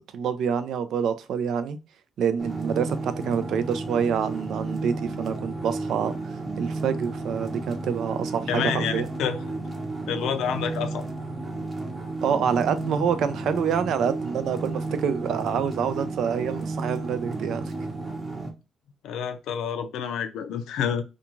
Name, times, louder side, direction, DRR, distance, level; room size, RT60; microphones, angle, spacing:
voice 1, 0.1-1.8 2.2-9.1 12.2-17.7, right 7 dB, 75° right, 0.4 m, -27 dB
sound 1, 2.4-18.5, right 2 dB, 25° right, 0.8 m, -33 dB
voice 2, 8.5-9.4 10.1-11.0 19.0-21.0, left 8 dB, 85° left, 0.4 m, -28 dB
2.5 x 2.3 x 2.9 m
cardioid pair, 90°, 0 cm